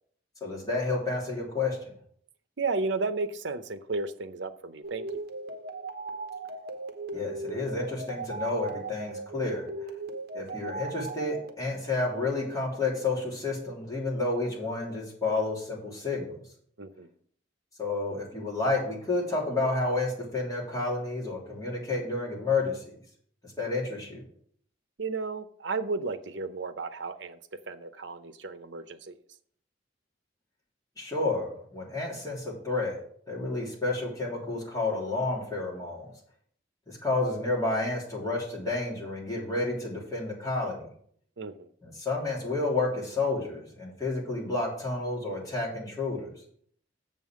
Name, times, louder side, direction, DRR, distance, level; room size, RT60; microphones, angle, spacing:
voice 1, 0.4-1.9 7.1-9.7 10.3-16.4 17.8-22.8 23.6-24.2 31.0-33.0 33.3-36.1 36.9-40.9 41.8-46.3, left 3 dB, 20° left, -4 dB, 3.0 m, -30 dB
voice 2, 2.6-5.1 16.8-17.1 25.0-27.4 27.7-29.1 41.4-41.7, right 3 dB, 80° right, 11 dB, 0.7 m, -33 dB
sound 1, 4.8-11.5, right 3 dB, 55° right, 1.1 m, -38 dB
7.2 x 5.5 x 7.4 m, 0.62 s
head